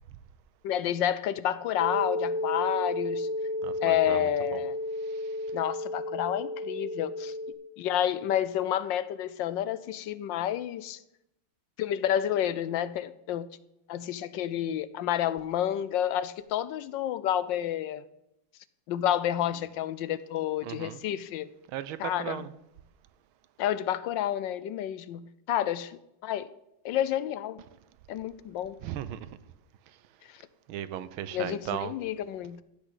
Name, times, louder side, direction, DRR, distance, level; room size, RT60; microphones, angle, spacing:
voice 1, 0.6-3.3 3.8-4.8 5.5-7.3 7.8-11.0 11.8-13.5 13.9-18.0 18.9-21.5 22.0-22.5 23.6-26.5 26.8-27.6 28.1-28.8 30.3-30.4 31.3-32.6, left 11 dB, 75° left, 1.2 m, -30 dB
sound 1, 1.8-7.5, left 1 dB, 70° right, 5.4 m, -32 dB
voice 2, 3.6-4.2 4.5-4.6 20.6-21.0 21.7-22.5 28.8-29.3 30.7-31.9, right 11 dB, 85° right, 1.6 m, -36 dB
14.5 x 6.3 x 8.2 m
omnidirectional pair, 2.2 m